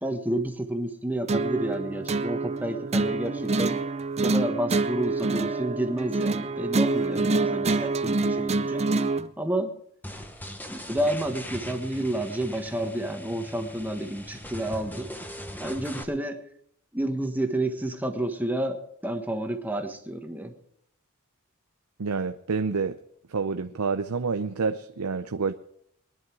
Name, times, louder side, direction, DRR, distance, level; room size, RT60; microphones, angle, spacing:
voice 1, 0.0-3.8 4.2-8.8 9.4-9.7 10.7-15.1 15.6-16.4 16.9-20.5, right 1 dB, 10° right, 1.4 m, -30 dB
sound 1, 1.3-9.3, right 3 dB, 30° right, 0.6 m, -26 dB
sound 2, 10.0-16.0, equal, 10° left, 1.2 m, -40 dB
voice 2, 22.0-23.0 23.3-25.5, right 4 dB, 80° right, 0.6 m, -28 dB
21.0 x 11.0 x 4.7 m
head